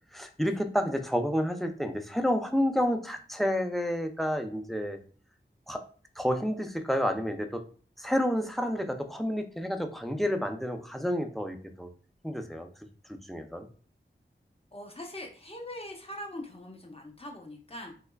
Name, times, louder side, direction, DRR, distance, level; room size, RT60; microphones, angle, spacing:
voice 1, 0.1-5.0 5.7-5.8 6.2-7.6 8.0-11.9 12.2-12.7 13.1-13.7, equal, ahead, 6 dB, 0.4 m, -30 dB
voice 2, 14.7-17.9, left 1 dB, 30° left, 1 dB, 0.8 m, -42 dB
3.4 x 3.1 x 2.3 m, 0.41 s
wide cardioid pair, 60°, 20 cm